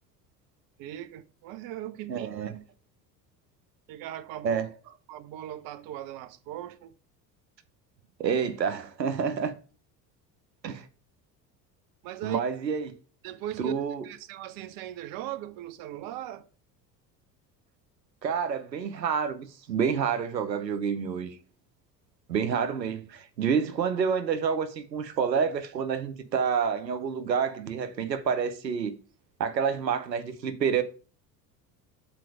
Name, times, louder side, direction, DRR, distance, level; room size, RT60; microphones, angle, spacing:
voice 1, 0.8-2.5 3.9-4.6 4.9-6.9 12.0-12.4 13.2-16.5, right 12 dB, 45° right, 0.7 m, -39 dB
voice 2, 2.1-2.6 4.4-4.7 8.2-9.5 10.6-10.9 12.2-12.9 13.6-14.0 18.2-21.4 22.3-28.9 29.4-30.8, right 6 dB, 85° right, 0.8 m, -28 dB
7.6 x 4.4 x 4.9 m
figure-of-eight pair, 65°, 50 cm